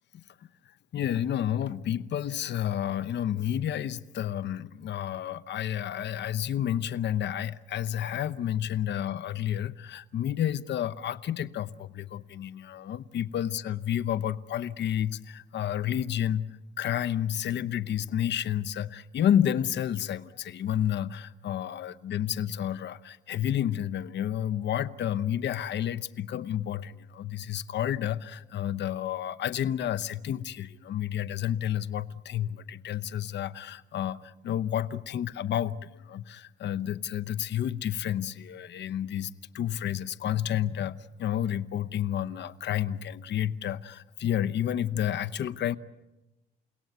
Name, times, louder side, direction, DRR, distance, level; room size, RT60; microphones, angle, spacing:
voice 1, 0.9-16.5 16.8-45.8, left 10 dB, 65° left, 15 dB, 0.9 m, -30 dB
29.5 x 17.5 x 9.4 m, 1.0 s
cardioid pair, 90°, 20 cm